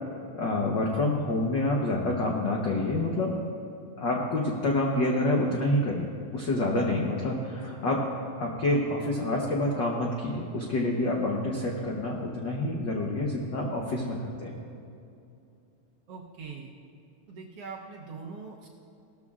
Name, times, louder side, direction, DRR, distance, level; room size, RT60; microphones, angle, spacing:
voice 1, 0.3-3.3 4.0-6.1 6.3-14.6, left 1 dB, 85° left, -1 dB, 1.0 m, -27 dB
voice 2, 16.1-16.7 17.3-18.7, right 5 dB, 65° right, -1 dB, 1.6 m, -42 dB
18.0 x 13.0 x 2.4 m, 2.6 s
omnidirectional pair, 3.6 m